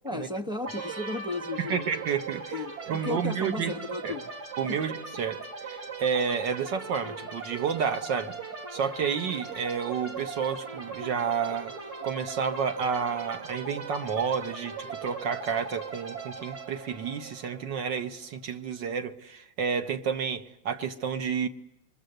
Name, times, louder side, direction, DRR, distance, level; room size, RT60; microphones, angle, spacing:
voice 1, 0.0-1.9 2.5-4.3 4.7-4.8, left 2 dB, 5° right, 7 dB, 1.0 m, -34 dB
sound 1, 0.6-18.2, right 4 dB, 55° right, 3.2 m, -39 dB
voice 2, 1.6-2.6 2.9-3.7 4.0-4.1 4.6-8.3 8.7-11.7 12.0-21.5, right 6 dB, 70° right, 7 dB, 2.0 m, -30 dB
27.5 x 23.0 x 8.0 m, 0.86 s
omnidirectional pair, 2.0 m